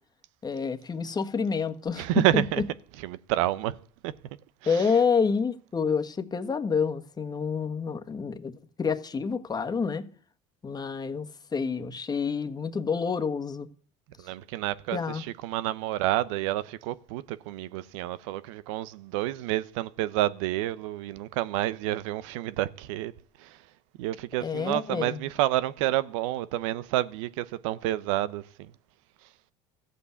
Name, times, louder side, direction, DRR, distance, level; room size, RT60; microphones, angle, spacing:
voice 1, 0.4-2.4 4.6-10.1 10.6-11.3 11.5-13.7 14.9-15.2 24.4-25.2, left 5 dB, 25° left, 1.5 m, -28 dB
voice 2, 2.0-2.6 3.0-3.8 4.0-4.1 4.6-4.9 14.2-23.1 23.4-23.6 24.0-28.7, right 15 dB, 90° right, 0.8 m, -29 dB
14.5 x 8.3 x 8.2 m
supercardioid pair, 100°, 16 cm